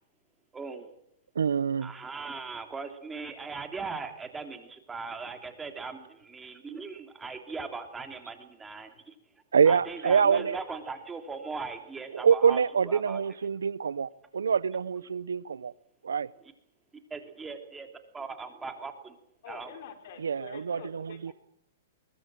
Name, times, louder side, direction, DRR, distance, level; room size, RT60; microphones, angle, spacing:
voice 1, 0.5-0.9 1.8-9.1 9.7-13.2 17.1-17.9 18.1-19.1 19.5-19.7, right 4 dB, 10° right, 3.0 m, -39 dB
voice 2, 1.4-1.9 9.5-10.6 12.1-15.7 16.0-16.3 20.2-21.3, right 6 dB, 85° right, 0.8 m, -25 dB
voice 3, 19.4-21.3, left 7 dB, 55° left, 4.6 m, -47 dB
22.0 x 20.5 x 7.6 m
hypercardioid pair, 125°, 0 cm